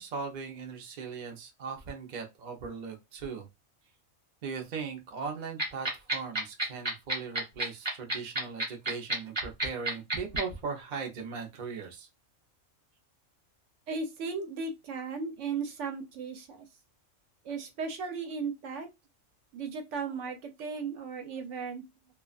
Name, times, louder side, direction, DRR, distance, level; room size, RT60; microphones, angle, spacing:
voice 1, 0.0-3.5 4.4-12.1, right 5 dB, 50° right, 0.6 m, -39 dB
sound 1, 5.6-10.4, right 2 dB, 25° right, 0.9 m, -29 dB
voice 2, 13.9-16.7 17.4-18.9 19.5-21.8, right 5 dB, 70° right, 0.9 m, -36 dB
2.3 x 2.3 x 2.3 m
omnidirectional pair, 1.4 m